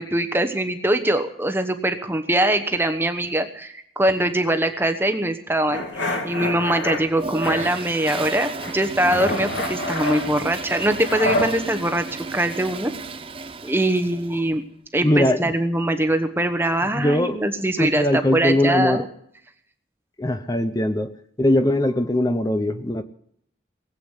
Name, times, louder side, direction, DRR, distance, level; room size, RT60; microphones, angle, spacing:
voice 1, 0.0-5.8 6.2-12.1 12.3-12.9 13.6-14.6 14.9-19.1, right 1 dB, 10° right, 8 dB, 1.1 m, -22 dB
sound 1, 5.7-7.0 7.4-8.3 8.6-11.5, left 1 dB, 80° left, 2.4 m, -28 dB
Toilet flush, 7.1-14.4, right 3 dB, 30° right, 0.7 m, -34 dB
voice 2, 15.0-15.5 16.9-17.4 17.8-19.0 20.2-21.1 21.4-23.0, left 1 dB, 20° left, 10 dB, 0.6 m, -21 dB
19.5 x 8.3 x 8.1 m, 0.69 s
head